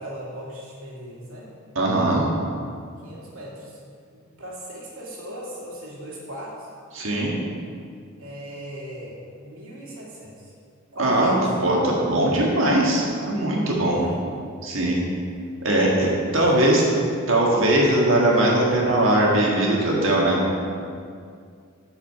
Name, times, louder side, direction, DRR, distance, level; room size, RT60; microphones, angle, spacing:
voice 1, 0.0-1.5 3.0-3.8 4.1-6.7 8.2-10.5 10.9-11.5 13.8-14.2 16.5-17.0, equal, 85° right, -4 dB, 2.3 m, -38 dB
voice 2, 1.7-2.3 6.9-7.3 11.0-11.3 11.6-14.0 14.6-15.0 15.6-16.8 17.3-20.4, right 1 dB, 65° right, -3 dB, 1.7 m, -20 dB
8.2 x 5.1 x 6.7 m, 2.2 s
head